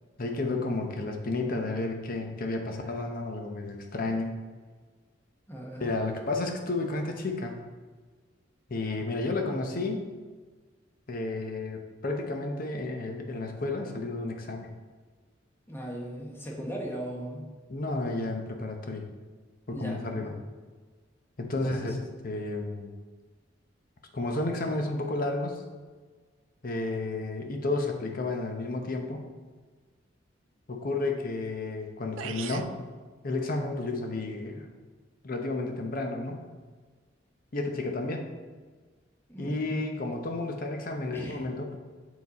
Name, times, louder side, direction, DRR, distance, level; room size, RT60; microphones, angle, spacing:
voice 1, 0.2-4.3 5.8-7.6 8.7-10.0 11.1-14.7 17.7-19.0 19.7-20.3 21.4-22.9 24.1-25.6 26.6-29.2 30.7-32.8 33.2-34.7 35.2-36.5 37.5-38.3 39.4-41.8, left 2 dB, 50° left, 3 dB, 0.8 m, -32 dB
voice 2, 5.5-5.9 15.7-17.5 19.7-20.3 21.5-21.9 39.3-39.9 41.1-41.4, right 1 dB, 10° left, -2 dB, 1.0 m, -37 dB
sound 1, 31.8-31.9 32.2-32.8, right 9 dB, 85° right, 0.3 m, -38 dB
7.2 x 4.1 x 4.1 m, 1.4 s
head